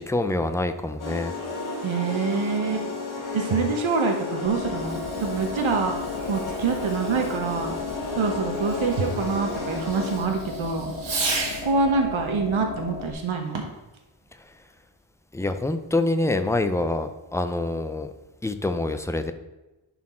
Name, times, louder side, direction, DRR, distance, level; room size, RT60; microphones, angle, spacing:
voice 1, 0.0-1.3 15.3-18.1 18.4-19.3, left 2 dB, 5° left, 8 dB, 0.4 m, -26 dB
sound 1, 1.0-10.2, left 3 dB, 40° left, 2.0 m, -33 dB
voice 2, 1.8-2.9 3.3-5.9 6.3-7.7 8.2-10.9 11.6-13.6, right 4 dB, 75° right, 4 dB, 1.0 m, -25 dB
sound 2, 4.4-13.1, left 3 dB, 80° left, 1.1 m, -36 dB
Fireworks, 4.7-11.8 13.4-13.9, right 3 dB, 60° right, 1.5 m, -36 dB
11.0 x 4.3 x 4.3 m, 1.0 s
wide cardioid pair, 165°, 48 cm